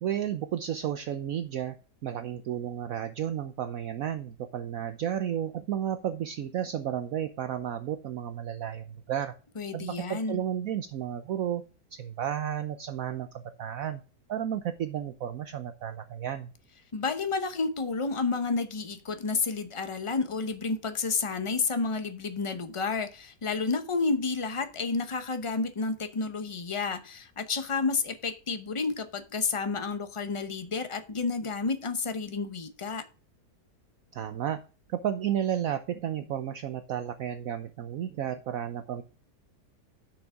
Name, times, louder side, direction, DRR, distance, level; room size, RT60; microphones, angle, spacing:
voice 1, 0.0-1.7 2.0-9.3 9.7-11.6 11.9-14.0 14.3-16.5 34.1-34.6 34.9-39.0, right 10 dB, 65° right, 1.0 m, -32 dB
voice 2, 9.6-10.4 16.9-33.0, left 4 dB, 30° left, 0.6 m, -30 dB
10.0 x 6.5 x 3.7 m
omnidirectional pair, 1.8 m